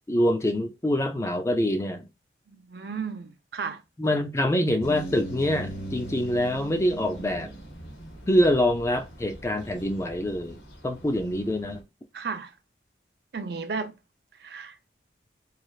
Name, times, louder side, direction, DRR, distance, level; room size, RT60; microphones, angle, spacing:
voice 1, 0.1-2.1 4.0-7.5 8.3-11.8, left 1 dB, 15° left, 0.3 m, -25 dB
voice 2, 2.5-3.8 12.1-12.5 13.3-13.9 14.4-14.7, right 5 dB, 55° right, 0.5 m, -34 dB
sound 1, 4.8-11.8, right 1 dB, 80° left, 0.9 m, -40 dB
3.1 x 2.3 x 2.3 m
head